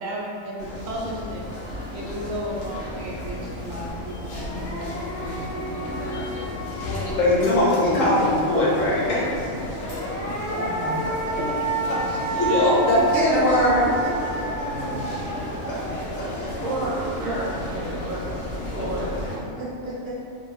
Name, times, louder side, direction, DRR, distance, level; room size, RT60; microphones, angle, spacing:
voice 1, 0.0-1.4 1.9-5.7 10.5-11.0 11.4-11.7 12.1-12.2 12.9-15.0, equal, 80° right, -3 dB, 0.9 m, -34 dB
sound 1, 0.6-19.4, left 1 dB, 70° left, 0.9 m, -33 dB
sound 2, 4.3-8.0 9.6-16.9, right 2 dB, 50° left, 0.4 m, -31 dB
voice 2, 6.6-9.6 12.1-13.9 16.4-16.5, left 1 dB, 90° left, -7 dB, 1.2 m, -21 dB
voice 3, 16.4-20.1, right 2 dB, 55° right, -7 dB, 0.5 m, -32 dB
2.6 x 2.3 x 3.0 m, 2.6 s
omnidirectional pair, 1.3 m